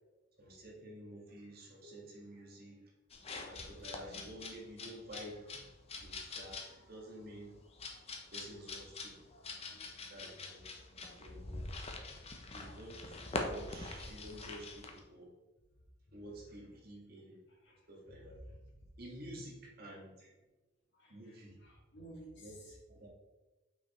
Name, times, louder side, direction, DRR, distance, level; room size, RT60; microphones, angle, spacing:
voice 1, 0.4-2.8 3.5-7.5 8.3-9.1 10.1-10.6 11.2-11.7 12.5-15.3 16.1-17.4 17.9-18.4 19.0-20.3 21.1-21.6 22.4-23.1, right 1 dB, 50° right, -2 dB, 1.7 m, -51 dB
sound 1, 3.1-15.0, left 3 dB, 30° left, 0.8 m, -45 dB
voice 2, 17.5-18.6 20.9-22.8, equal, 60° left, -3 dB, 2.2 m, -55 dB
5.9 x 5.1 x 4.2 m, 1.1 s
head